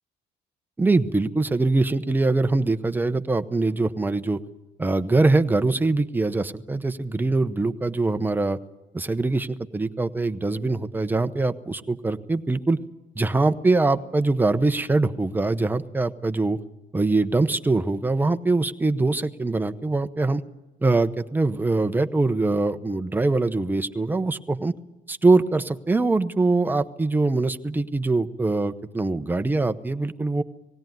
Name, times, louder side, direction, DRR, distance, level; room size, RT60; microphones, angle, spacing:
voice 1, 0.8-4.4 4.8-8.6 8.9-12.8 13.2-16.6 16.9-20.4 20.8-24.7 25.1-30.4, right 3 dB, 10° right, 9 dB, 0.8 m, -23 dB
19.5 x 17.0 x 9.3 m, 1.1 s
cardioid pair, 110°, 17 cm